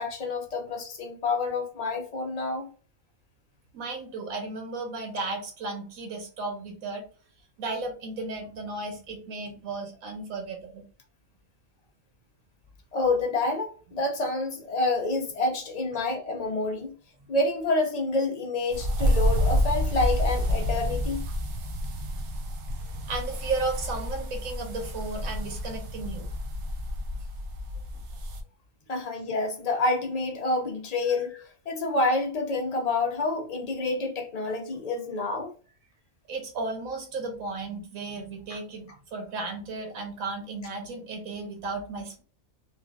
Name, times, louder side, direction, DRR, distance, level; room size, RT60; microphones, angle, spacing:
voice 1, 0.0-2.7 12.9-16.9 17.3-21.2 28.9-35.5 38.5-38.6, left 2 dB, 55° left, 0.4 m, -28 dB
voice 2, 3.7-7.0 7.6-10.8 23.1-26.3 36.3-42.2, right 3 dB, 90° right, 1.3 m, -34 dB
sound 1, 18.7-28.4, equal, 65° right, 0.9 m, -29 dB
3.1 x 2.3 x 2.3 m
omnidirectional pair, 1.4 m